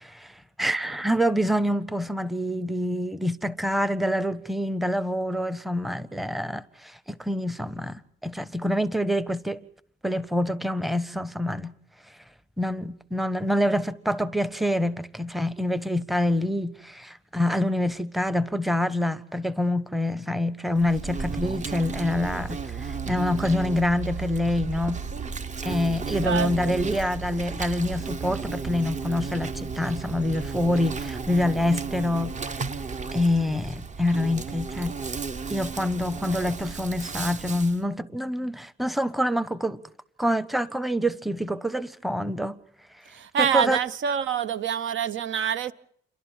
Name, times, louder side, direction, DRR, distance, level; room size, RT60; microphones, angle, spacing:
voice 1, 0.0-9.6 10.0-11.7 12.6-25.0 25.6-32.7 33.1-35.0 35.5-39.8 40.2-42.6 43.4-43.8, left 1 dB, ahead, 0.8 m, -26 dB
Insect, 20.8-37.8, right 5 dB, 35° right, 1.0 m, -34 dB
voice 2, 26.2-26.7 43.1-45.7, right 8 dB, 75° right, 1.0 m, -26 dB
29.0 x 11.5 x 8.9 m
cardioid pair, 90°, 20 cm